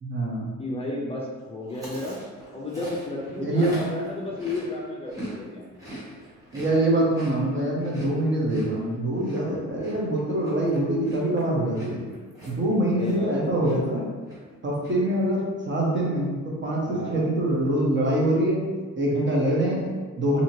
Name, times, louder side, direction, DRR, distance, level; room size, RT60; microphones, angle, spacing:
voice 1, 0.0-0.5 3.4-3.8 6.5-12.0 12.5-14.0 14.6-18.6 19.0-20.4, right 1 dB, 40° right, -3 dB, 0.9 m, -24 dB
voice 2, 0.6-2.3 2.5-5.7 12.9-13.6 16.9-17.3, left 2 dB, 20° left, -4 dB, 0.4 m, -33 dB
Chewing mastication, 1.7-5.4 5.6-13.4 13.6-14.0 14.2-14.9, right 1 dB, 10° right, 1.1 m, -42 dB
2.8 x 2.7 x 2.7 m, 1.4 s
cardioid pair, 90°, 30 cm